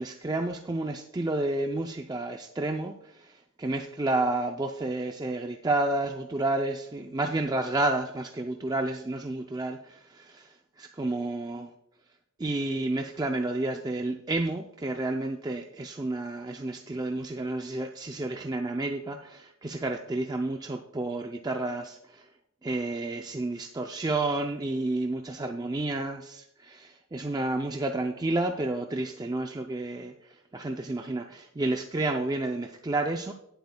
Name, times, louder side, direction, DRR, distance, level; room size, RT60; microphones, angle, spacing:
voice 1, 0.0-11.7 12.4-22.3 22.6-30.1 30.5-33.3, right 2 dB, 20° right, 4 dB, 0.4 m, -30 dB
18.0 x 7.9 x 2.2 m, 0.82 s
head